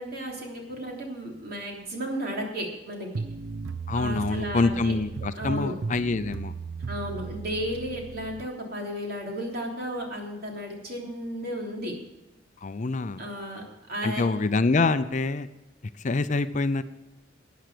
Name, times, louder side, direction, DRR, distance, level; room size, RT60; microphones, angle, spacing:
voice 1, 0.0-3.1 3.9-4.9 5.3-5.7 6.9-11.9 13.2-14.3, equal, 55° right, 0 dB, 3.2 m, -34 dB
sound 1, 3.1-8.5, right 5 dB, 85° right, 0.6 m, -36 dB
voice 2, 3.9-6.5 12.6-13.2 14.0-15.5 16.0-16.8, left 3 dB, 40° left, 12 dB, 0.5 m, -26 dB
13.5 x 9.2 x 5.0 m, 1.0 s
head